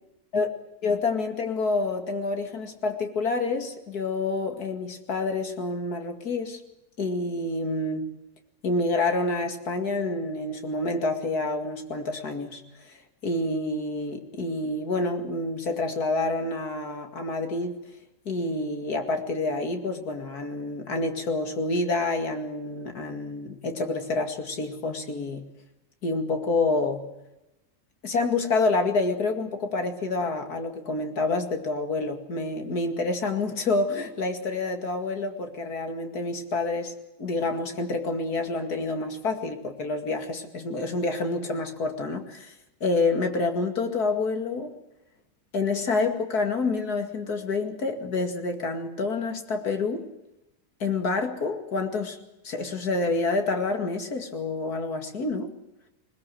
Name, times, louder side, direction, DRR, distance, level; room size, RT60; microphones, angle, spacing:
voice 1, 0.8-6.6 7.0-8.1 8.6-12.9 13.2-17.9 18.3-25.4 26.0-27.1 28.0-42.5 42.8-44.7 45.5-50.1 50.8-52.2 52.4-55.5, left 3 dB, 85° left, 5 dB, 2.8 m, -28 dB
20.5 x 20.5 x 7.8 m, 0.95 s
omnidirectional pair, 1.6 m